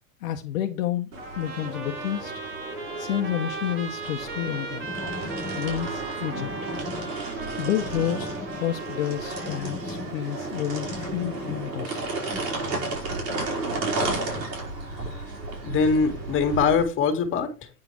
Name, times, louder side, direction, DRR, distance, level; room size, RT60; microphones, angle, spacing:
voice 1, 0.2-2.3 3.0-4.9 5.5-6.5 7.6-8.3 8.6-12.1, left 11 dB, 55° left, 1.1 m, -29 dB
sound 1, 1.1-16.8, right 2 dB, 75° right, 4.6 m, -33 dB
Trumpet, 1.2-9.8, right 4 dB, 25° right, 2.1 m, -38 dB
sound 2, 4.8-12.4, left 5 dB, 5° left, 1.1 m, -40 dB
voice 2, 15.6-17.7, left 5 dB, 25° left, 2.1 m, -23 dB
9.4 x 5.0 x 4.6 m
hypercardioid pair, 120°, 49 cm